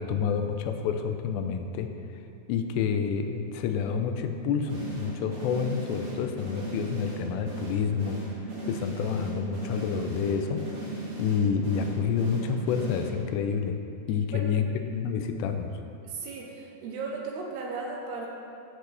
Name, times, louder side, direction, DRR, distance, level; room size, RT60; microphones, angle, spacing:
voice 1, 0.0-1.9 2.5-8.2 8.7-10.7 11.2-13.8 14.1-15.7, left 6 dB, 85° left, 6 dB, 2.9 m, -28 dB
sound 1, 4.7-13.5, right 2 dB, 50° right, 1.8 m, -37 dB
voice 2, 16.0-18.3, right 4 dB, 75° right, 0 dB, 2.8 m, -36 dB
14.5 x 8.1 x 3.4 m, 2.6 s
omnidirectional pair, 5.0 m